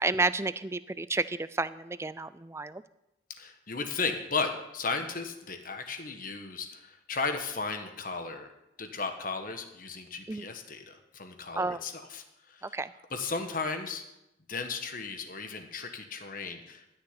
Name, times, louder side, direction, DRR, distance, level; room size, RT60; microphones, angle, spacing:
voice 1, 0.0-2.8 10.3-10.4 11.6-11.8 12.6-12.9, right 3 dB, 15° right, 16 dB, 0.4 m, -31 dB
voice 2, 3.4-8.5 8.8-12.8 13.1-14.0 14.5-16.9, left 4 dB, 45° left, 6 dB, 1.3 m, -35 dB
13.5 x 6.7 x 9.7 m, 0.88 s
head